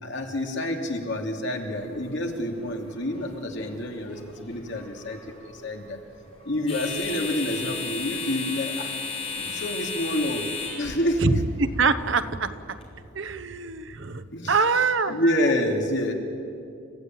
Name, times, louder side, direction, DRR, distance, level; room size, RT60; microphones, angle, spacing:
voice 1, 0.0-6.0 6.4-8.9 9.3-10.4 10.8-11.4 14.3-16.1, left 1 dB, 60° left, 2 dB, 2.9 m, -28 dB
sound 1, 1.6-12.8, left 4 dB, 30° left, 5.0 m, -36 dB
voice 2, 11.6-12.5 13.1-15.2, right 4 dB, 65° right, 13 dB, 1.0 m, -24 dB
29.5 x 15.0 x 9.2 m, 2.6 s
head